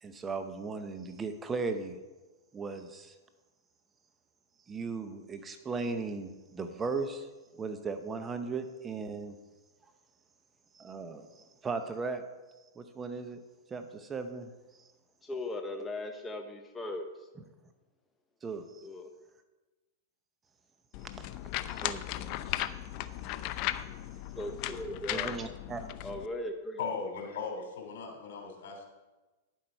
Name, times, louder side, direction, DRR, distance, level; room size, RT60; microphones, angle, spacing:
voice 1, 0.0-2.0 2.5-3.1 4.7-7.3 7.6-9.3 10.7-12.2 12.8-13.4 13.7-14.5 14.8-14.9 18.4-18.9 21.7-22.7 25.1-25.9, right 4 dB, 20° right, 8 dB, 0.8 m, -37 dB
voice 2, 15.2-17.0 18.8-19.1 24.4-25.4 26.0-26.8, left 1 dB, 10° left, 3 dB, 0.8 m, -38 dB
sound 1, 20.9-26.3, left 14 dB, 50° left, 0.5 m, -37 dB
voice 3, 26.8-28.8, left 5 dB, 70° left, 2 dB, 2.9 m, -38 dB
10.5 x 7.7 x 4.5 m, 1.2 s
hypercardioid pair, 125°, 0 cm